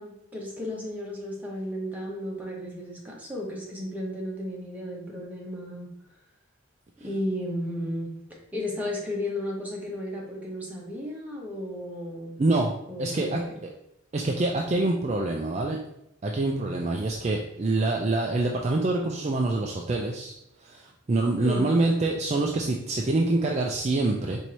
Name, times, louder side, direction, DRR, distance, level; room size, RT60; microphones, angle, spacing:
voice 1, 0.0-5.9 7.0-8.2 8.5-12.4 12.9-13.6 21.4-21.7, left 1 dB, 10° right, -3 dB, 1.0 m, -34 dB
voice 2, 12.4-12.7 13.0-13.4 14.1-15.8 16.2-20.3 20.6-24.4, right 2 dB, 35° right, 0 dB, 0.4 m, -25 dB
4.6 x 2.7 x 4.2 m, 0.77 s
head